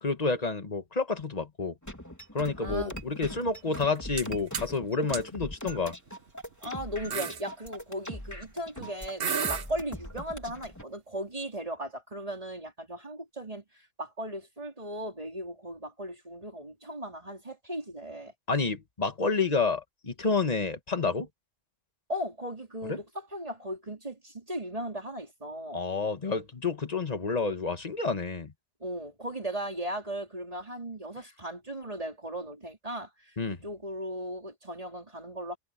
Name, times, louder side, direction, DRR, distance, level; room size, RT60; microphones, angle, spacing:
voice 1, 0.0-1.7 2.3-5.9 18.5-21.3 22.9-23.0 25.7-28.5 33.4-33.6, left 4 dB, 40° left, 1.6 m, -29 dB
sound 1, 1.8-10.8, equal, 15° left, 3.4 m, -41 dB
voice 2, 2.6-3.3 6.6-18.3 22.1-25.8 28.8-35.6, right 1 dB, 35° right, 4.6 m, -37 dB
sound 2, 3.8-4.3 4.5-4.7 5.1-5.2 6.1-6.3 6.7-6.8 7.1-7.4 8.8-8.9 9.2-9.7, right 7 dB, 60° right, 1.3 m, -31 dB
omnidirectional pair, 1.1 m